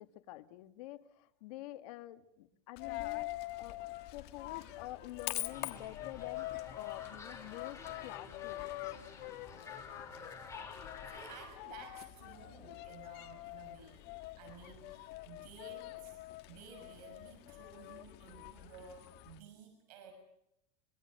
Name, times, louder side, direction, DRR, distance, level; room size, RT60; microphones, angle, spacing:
voice 1, 0.0-8.7, left 16 dB, 75° left, 9 dB, 1.6 m, -48 dB
Coin (dropping), 2.8-19.4, left 18 dB, 55° left, 1.5 m, -45 dB
Crow, 4.3-4.8 5.4-5.5 6.3-9.7, right 4 dB, 25° right, 7.1 m, -68 dB
sound 1, 5.5-11.5, left 4 dB, 15° left, 5.1 m, -50 dB
voice 2, 11.1-14.0 14.4-16.2 16.5-20.1, right 6 dB, 80° right, 6 dB, 6.5 m, -54 dB
25.0 x 23.0 x 6.6 m, 0.80 s
supercardioid pair, 120°, 20 cm